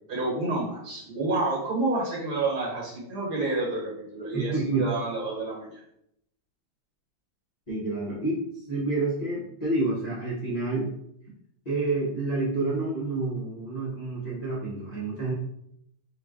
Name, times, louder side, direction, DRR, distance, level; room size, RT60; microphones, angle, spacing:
voice 1, 0.1-4.5 4.8-5.8, right 2 dB, 55° right, -4 dB, 1.8 m, -29 dB
voice 2, 4.3-4.9 7.7-8.4 8.7-10.9 11.6-15.3, right 2 dB, 30° left, -8 dB, 0.8 m, -28 dB
4.6 x 2.4 x 3.7 m, 0.76 s
omnidirectional pair, 2.1 m